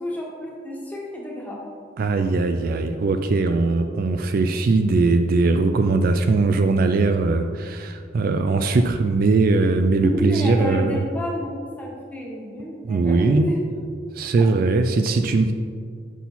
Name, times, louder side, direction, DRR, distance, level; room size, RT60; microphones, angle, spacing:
voice 1, 0.0-1.6 10.0-13.6 14.4-14.5, left 1 dB, 10° left, -3 dB, 1.2 m, -30 dB
voice 2, 2.0-11.0 12.8-13.5 14.1-15.5, right 3 dB, 50° right, 7 dB, 0.3 m, -20 dB
6.1 x 5.5 x 4.2 m, 2.1 s
head